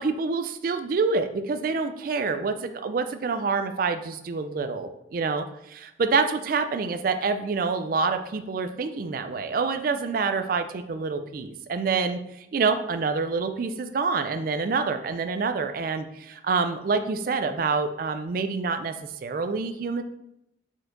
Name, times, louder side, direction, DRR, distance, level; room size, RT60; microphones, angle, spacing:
voice 1, 0.0-18.9 19.2-20.0, right 4 dB, 50° right, 8 dB, 0.3 m, -27 dB
4.4 x 4.3 x 2.5 m, 0.81 s
head